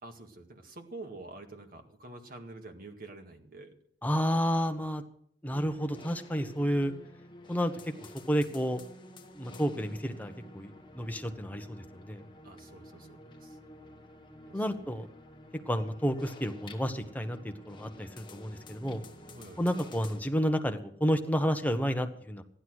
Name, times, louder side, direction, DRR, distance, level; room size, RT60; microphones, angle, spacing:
voice 1, 0.0-3.7 12.4-13.6 14.5-14.6 19.3-19.7, right 2 dB, 55° right, 4 dB, 1.9 m, -47 dB
voice 2, 4.0-5.0 5.4-6.9 7.5-7.7 8.3-8.8 9.4-12.2 14.5-15.1 15.7-19.0 19.6-22.4, equal, 10° left, 6 dB, 1.0 m, -30 dB
sound 1, 5.5-20.2, left 1 dB, 25° left, 1.3 m, -51 dB
15.0 x 11.5 x 6.3 m, 0.65 s
head